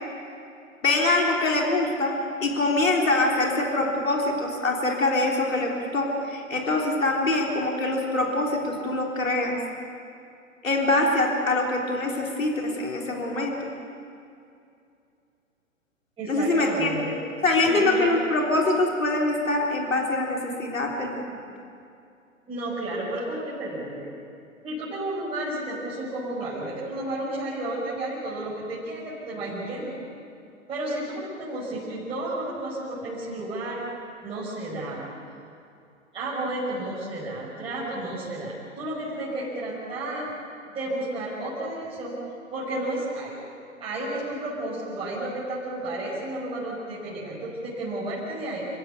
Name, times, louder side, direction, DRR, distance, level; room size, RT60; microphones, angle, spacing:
voice 1, 0.8-9.6 10.6-13.6 16.3-17.0 17.4-21.3, left 2 dB, 75° left, 0 dB, 3.7 m, -24 dB
voice 2, 16.2-17.2 17.8-18.1 22.5-24.1 24.6-30.0 30.7-33.8 34.2-35.0 36.1-40.4 40.7-42.2 42.5-43.4 43.8-48.7, right 1 dB, 15° right, -9 dB, 6.0 m, -32 dB
28.5 x 16.0 x 8.3 m, 2.5 s
figure-of-eight pair, 115°, 40 cm